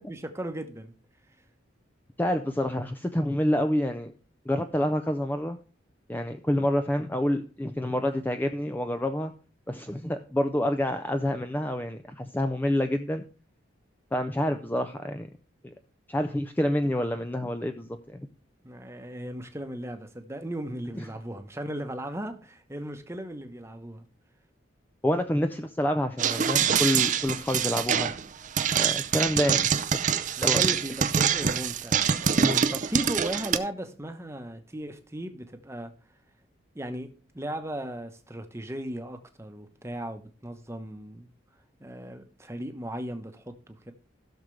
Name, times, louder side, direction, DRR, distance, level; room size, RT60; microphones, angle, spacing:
voice 1, 0.1-0.9 8.0-8.2 18.6-24.0 30.4-35.9 36.7-37.1 37.3-41.3 41.8-43.9, right 1 dB, 15° right, 1.0 m, -36 dB
voice 2, 2.2-4.1 4.5-5.6 6.1-9.3 9.7-13.2 14.1-15.3 15.6-15.7 16.1-18.3 20.9-21.1 25.0-28.1 28.7-30.6 32.4-32.7, left 1 dB, 10° left, 0.5 m, -28 dB
sound 1, 26.2-33.6, right 7 dB, 40° right, 0.5 m, -25 dB
16.0 x 6.5 x 3.2 m
head